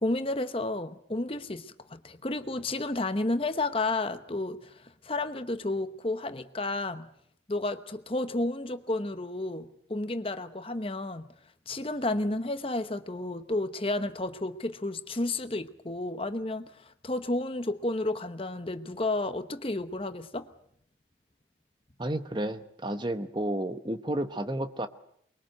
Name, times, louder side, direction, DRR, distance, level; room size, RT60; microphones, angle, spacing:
voice 1, 0.0-7.1 7.5-11.3 11.7-20.5, left 2 dB, 30° left, 10 dB, 1.0 m, -31 dB
voice 2, 22.0-24.9, right 1 dB, 25° right, 10 dB, 1.0 m, -31 dB
24.0 x 22.0 x 7.8 m, 0.70 s
head